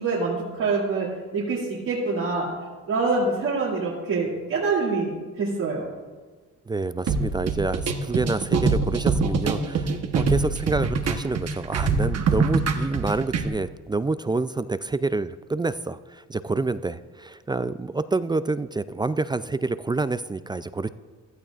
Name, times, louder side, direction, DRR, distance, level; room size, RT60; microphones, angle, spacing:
voice 1, 0.0-2.5 2.9-5.9, right 3 dB, 80° right, -8 dB, 2.7 m, -25 dB
voice 2, 6.7-20.9, right 3 dB, 15° right, 14 dB, 0.3 m, -28 dB
sound 1, 7.1-13.5, right 4 dB, 55° right, 1.1 m, -24 dB
16.0 x 12.0 x 2.5 m, 1.4 s
cardioid pair, 90°, 30 cm